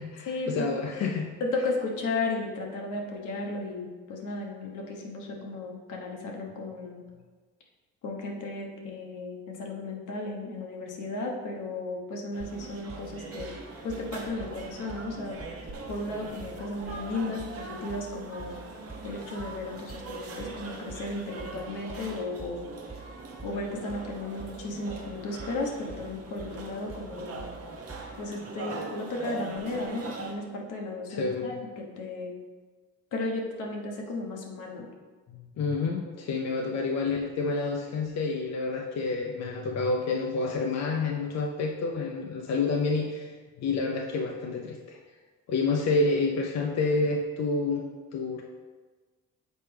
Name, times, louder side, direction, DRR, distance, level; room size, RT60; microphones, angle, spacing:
voice 1, 0.0-1.3 31.1-31.5 35.3-43.3 43.6-45.0 45.5-48.4, left 3 dB, 60° left, 1 dB, 0.7 m, -29 dB
voice 2, 1.4-7.0 8.0-13.5 13.8-15.4 15.9-18.6 19.0-22.7 23.4-27.5 28.2-32.3 33.1-34.9, left 2 dB, 80° left, 0 dB, 1.2 m, -34 dB
sound 1, 12.3-30.3, right 3 dB, 50° right, 1.0 m, -42 dB
sound 2, 12.4-28.3, right 4 dB, 20° right, 1.7 m, -46 dB
6.7 x 4.5 x 3.4 m, 1.4 s
cardioid pair, 90°, 30 cm